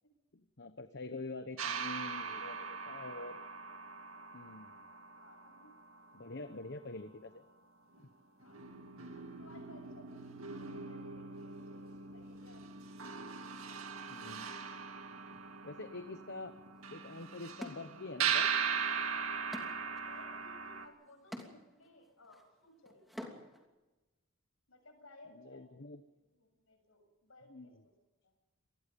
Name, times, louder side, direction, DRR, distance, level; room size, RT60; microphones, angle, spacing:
voice 1, 0.3-3.4 4.3-4.8 6.1-7.4 8.0-8.1 14.1-14.9 15.6-16.5 16.9-18.5 25.3-26.0 27.5-27.8, left 2 dB, 55° left, 9 dB, 1.1 m, -46 dB
sound 1, 1.6-6.4 7.9-8.0 8.4-20.9, right 6 dB, 75° right, 2.2 m, -40 dB
voice 2, 5.1-5.7 8.4-8.7 9.1-12.9 19.9-23.4 24.7-25.6 26.1-27.9, left 1 dB, 70° left, 6 dB, 7.5 m, -60 dB
sound 2, 16.8-16.9 17.6-18.5 18.9-23.7, left 1 dB, ahead, 3.0 m, -50 dB
27.0 x 20.0 x 5.4 m, 1.1 s
head